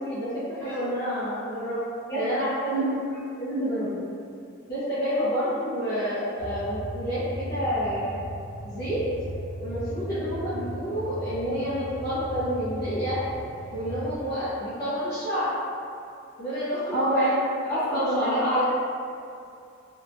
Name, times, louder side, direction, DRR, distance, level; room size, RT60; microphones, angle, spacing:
voice 1, 0.0-1.8 2.1-2.5 4.7-8.2 8.6-9.0 9.6-13.2 13.7-15.6 16.4-17.0 17.7-18.6, equal, 45° left, -12 dB, 0.6 m, -29 dB
voice 2, 2.1-2.9 3.4-4.0 16.9-17.3 17.7-18.4, right 1 dB, 15° left, -14 dB, 1.0 m, -27 dB
sound 1, 6.4-14.2, equal, 75° right, 0.7 m, -37 dB
2.8 x 2.2 x 2.5 m, 2.5 s
head